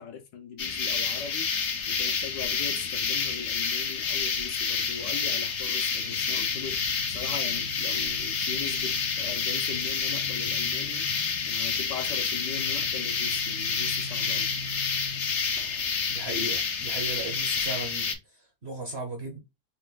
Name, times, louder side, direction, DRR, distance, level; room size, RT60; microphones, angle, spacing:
voice 1, 0.0-1.5 1.9-6.8 7.1-11.1 11.5-14.5, left 7 dB, 70° left, 1.3 m, -40 dB
sound 1, 0.6-18.1, left 5 dB, 55° left, 0.8 m, -29 dB
voice 2, 16.1-19.4, right 2 dB, 45° right, 0.9 m, -36 dB
4.1 x 2.5 x 3.7 m
omnidirectional pair, 2.1 m